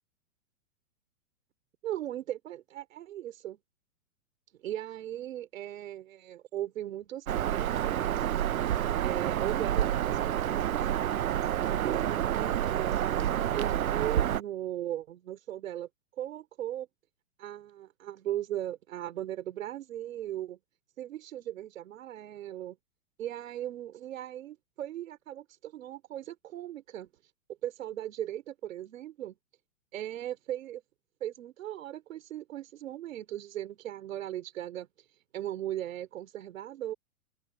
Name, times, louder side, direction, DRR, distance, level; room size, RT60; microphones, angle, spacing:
voice 1, 1.8-3.6 4.6-8.2 9.0-10.8 11.4-13.2 13.5-15.9 16.2-16.9 17.4-20.6 21.0-22.8 23.2-27.1 27.6-29.4 29.9-30.8 31.2-34.9 35.3-36.9, right 12 dB, 70° right, 4.0 m, -38 dB
Bird vocalization bird call bird song, 7.3-14.4, right 11 dB, 85° right, 1.0 m, -28 dB
hypercardioid pair, 130°, 41 cm